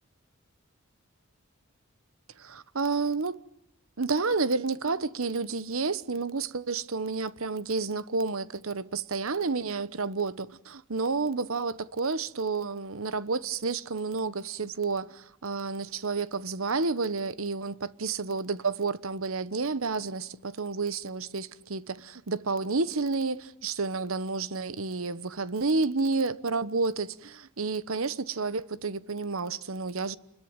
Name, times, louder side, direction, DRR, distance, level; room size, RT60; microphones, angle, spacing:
voice 1, 2.4-3.4 4.0-30.2, right 4 dB, 85° right, 1.1 m, -30 dB
27.5 x 21.5 x 9.0 m
head